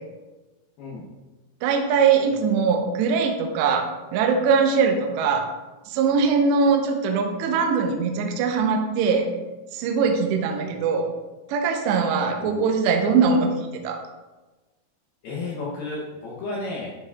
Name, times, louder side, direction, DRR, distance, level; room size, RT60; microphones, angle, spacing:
voice 1, 0.8-1.1 12.4-12.8 15.2-17.0, left 2 dB, 90° left, -4 dB, 2.1 m, -33 dB
voice 2, 1.6-3.8 4.1-5.4 5.9-9.3 9.7-11.0 11.5-13.5 13.8-14.0, right 5 dB, 80° right, 2 dB, 2.6 m, -21 dB
12.0 x 4.7 x 2.4 m, 1.2 s
omnidirectional pair, 5.7 m